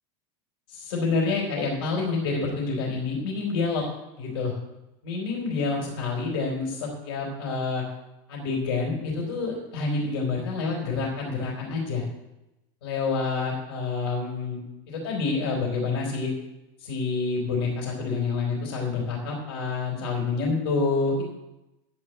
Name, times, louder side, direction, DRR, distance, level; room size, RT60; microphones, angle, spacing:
voice 1, 0.7-3.8 4.1-4.5 5.0-7.8 8.3-12.1 12.8-14.6 14.9-16.3 16.8-21.2, left 4 dB, 90° left, -2 dB, 4.2 m, -28 dB
11.5 x 5.6 x 8.1 m, 0.93 s
supercardioid pair, 165°, 13 cm